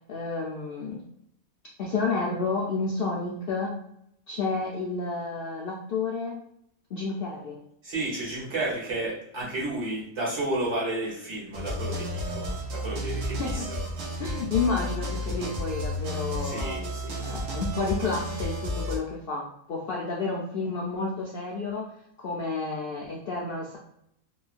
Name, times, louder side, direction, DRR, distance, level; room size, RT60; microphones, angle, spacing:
voice 1, 0.1-1.0 1.8-3.7 4.3-6.3 6.9-7.6 13.4-13.7 14.2-16.8 17.2-21.8 22.2-23.8, left 4 dB, 80° left, -3 dB, 0.5 m, -30 dB
voice 2, 7.8-13.8 16.4-17.5, right 2 dB, 55° right, -5 dB, 1.3 m, -32 dB
sound 1, 11.5-19.0, equal, 70° right, 1.0 m, -32 dB
3.0 x 2.2 x 2.4 m, 0.75 s
omnidirectional pair, 1.5 m